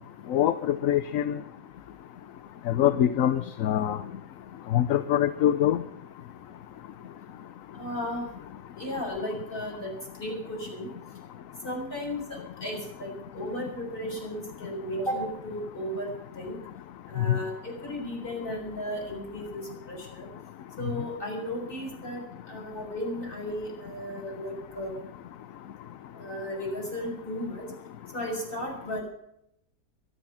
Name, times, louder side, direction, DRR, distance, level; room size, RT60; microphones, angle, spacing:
voice 1, 0.3-1.4 2.7-4.0 4.7-5.8 17.3-17.4, left 11 dB, 65° left, 12 dB, 1.1 m, -24 dB
voice 2, 7.8-8.3 8.8-9.9 10.2-10.9 11.6-16.1 16.4-16.6 17.1-19.6 19.9-20.3 20.8-24.9 26.1-27.7 28.1-29.0, equal, 35° left, -1 dB, 6.4 m, -35 dB
23.5 x 8.8 x 5.7 m, 0.77 s
omnidirectional pair, 1.6 m